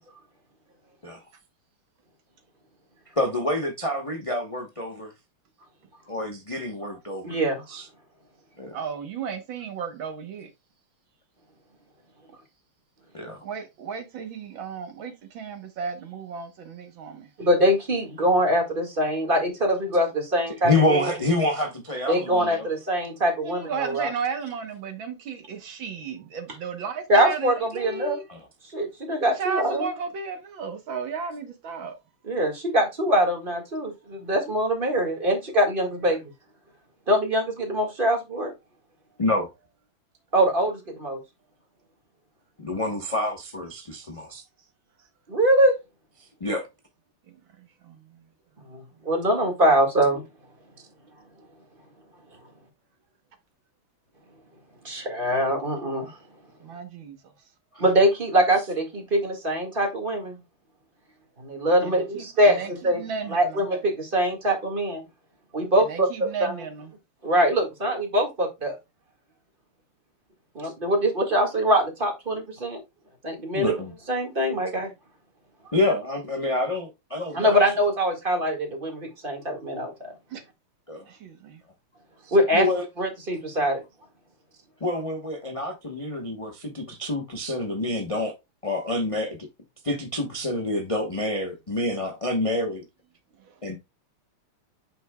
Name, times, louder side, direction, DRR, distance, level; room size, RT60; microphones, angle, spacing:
voice 1, 3.2-5.1 6.1-7.3 7.7-7.9 8.6-8.8 13.1-13.4 20.6-22.7 28.3-28.4 39.2-39.5 42.6-44.4 46.2-46.7 57.7-57.8 70.6-70.7 73.5-73.9 75.7-77.6 80.9-81.1 82.2-82.9 84.8-88.3 88.6-89.4 89.8-92.8 93.6-93.8, left 1 dB, 35° left, 0.5 m, -27 dB
voice 2, 7.2-7.6 17.4-21.1 22.1-24.1 27.1-28.2 28.7-29.9 32.2-36.2 37.1-38.5 40.3-41.2 45.3-45.8 48.7-50.2 54.8-56.2 57.8-60.4 61.4-63.0 63.3-65.0 65.5-66.6 67.2-68.8 70.6-72.8 73.2-73.7 74.1-74.9 77.3-80.1 82.3-82.7 83.0-83.8, equal, 25° right, 1.9 m, -23 dB
voice 3, 8.7-10.5 13.4-17.3 23.4-28.2 29.2-31.9 47.3-47.4 47.8-48.0 56.6-57.2 61.8-62.7 63.0-63.7 65.8-66.9 80.3-80.4 81.1-81.6, right 6 dB, 65° right, 1.8 m, -34 dB
8.1 x 5.9 x 2.3 m
omnidirectional pair, 2.4 m